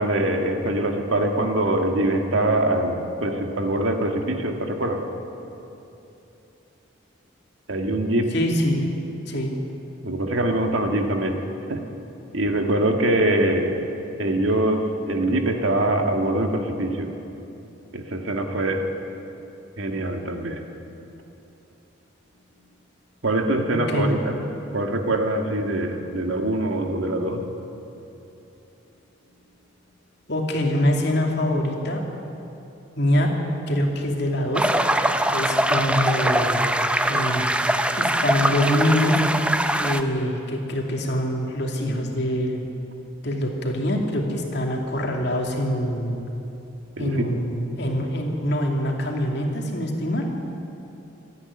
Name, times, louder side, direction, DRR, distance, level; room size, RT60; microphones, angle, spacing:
voice 1, 0.0-5.0 7.7-8.3 10.0-11.4 11.7-11.8 12.3-13.8 14.2-17.1 17.9-18.9 19.8-20.6 23.2-24.4 24.7-27.4 47.0-47.2, right 1 dB, 70° right, 3 dB, 1.9 m, -23 dB
voice 2, 8.3-8.9 9.3-9.5 23.9-24.1 30.3-32.0 33.0-33.3 33.7-34.7 35.3-36.7 37.1-37.5 37.9-39.2 39.8-42.6 43.2-46.2 47.0-50.2, left 1 dB, 55° left, 1 dB, 2.7 m, -24 dB
sound 1, 34.5-40.0, right 1 dB, 5° right, 0.6 m, -22 dB
27.0 x 9.8 x 9.9 m, 2.9 s
head